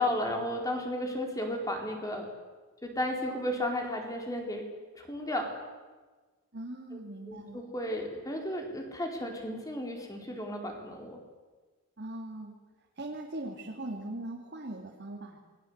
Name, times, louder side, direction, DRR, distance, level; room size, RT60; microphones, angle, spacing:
voice 1, 0.0-2.3 2.8-4.6 4.9-5.5 7.3-11.2, left 1 dB, 15° left, 2 dB, 4.4 m, -33 dB
voice 2, 6.5-7.6 12.0-12.6 13.0-15.4, right 1 dB, 50° right, -1 dB, 2.8 m, -40 dB
28.0 x 21.0 x 8.2 m, 1.3 s
head